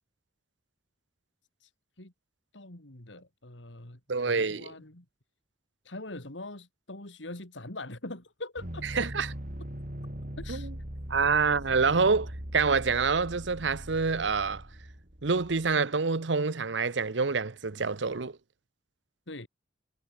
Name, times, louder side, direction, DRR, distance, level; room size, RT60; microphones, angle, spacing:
voice 1, 2.5-5.1 5.8-8.8 10.4-10.7 19.3-19.5, left 2 dB, 80° left, 3.5 m, -43 dB
voice 2, 4.1-4.7 8.9-9.3 10.5-10.7 11.1-14.6 15.2-18.4, right 4 dB, 75° right, 0.9 m, -27 dB
sound 1, 8.6-15.8, equal, 45° right, 3.8 m, -41 dB
head